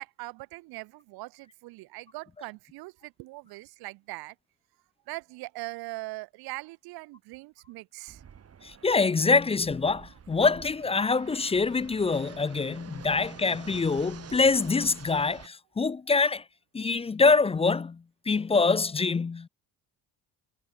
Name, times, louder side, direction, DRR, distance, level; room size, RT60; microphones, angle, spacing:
voice 1, 0.0-4.3 5.1-8.2, right 21 dB, 75° right, 0.9 m, -41 dB
Fixed-wing aircraft airplane, 8.1-15.5, right 8 dB, 40° right, 7.3 m, -48 dB
voice 2, 8.6-16.4 16.7-19.5, left 4 dB, 15° left, 0.5 m, -25 dB
cardioid pair, 115°, 37 cm